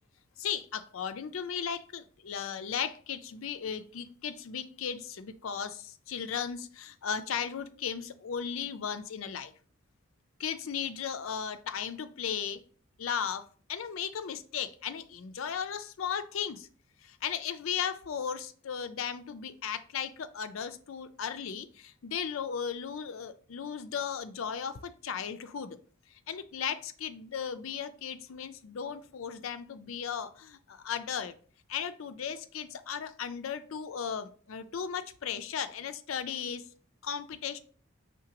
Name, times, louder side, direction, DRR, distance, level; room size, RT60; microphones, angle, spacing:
voice 1, 0.4-9.5 10.4-12.6 13.0-16.7 17.0-25.8 26.3-31.3 31.7-36.7 37.0-37.6, left 7 dB, 85° left, 0.5 m, -36 dB
5.0 x 3.6 x 2.9 m
head